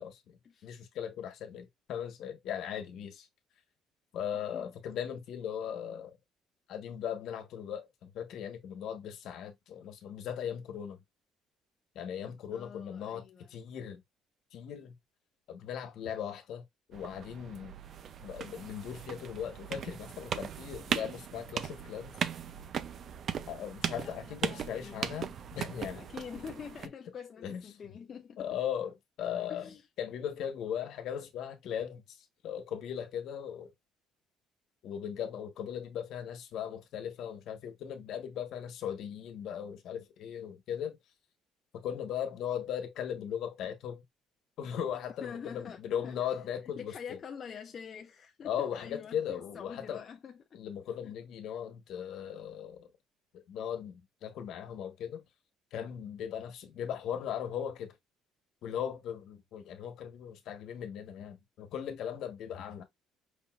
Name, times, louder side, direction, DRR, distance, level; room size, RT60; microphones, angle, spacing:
voice 1, 0.0-3.3 4.1-6.2 6.7-11.0 11.9-13.2 13.5-14.0 14.5-15.0 15.5-17.8 18.2-22.2 23.5-26.0 27.4-27.6 28.4-29.7 30.0-33.7 34.8-41.0 41.8-44.0 44.6-47.2 48.4-50.0 50.5-52.9 53.3-55.2 55.7-57.9 58.6-62.8, left 9 dB, 60° left, 1.2 m, -38 dB
voice 2, 4.3-4.7 12.5-13.5 24.0-25.1 25.9-28.5 29.5-29.9 45.2-46.2 46.6-50.6 51.0-51.1, left 7 dB, 35° left, 0.5 m, -46 dB
sound 1, 16.9-26.9, right 8 dB, 45° right, 0.5 m, -38 dB
5.2 x 3.0 x 2.4 m
cardioid pair, 145°, 0 cm